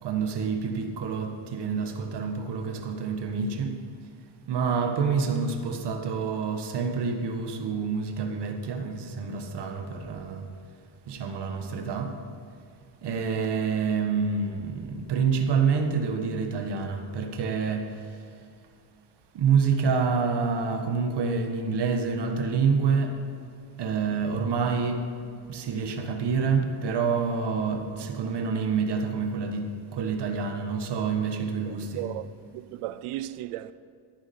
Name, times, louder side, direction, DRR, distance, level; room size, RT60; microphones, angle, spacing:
voice 1, 0.0-3.8 4.5-10.5 11.1-12.2 13.0-18.0 19.3-23.2 23.8-25.1 25.5-32.1, right 5 dB, 55° right, 1.3 m, -27 dB
voice 2, 31.6-32.3 32.5-33.7, right 15 dB, 85° right, 0.6 m, -35 dB
13.5 x 10.5 x 4.3 m
cardioid pair, 125°, 50 cm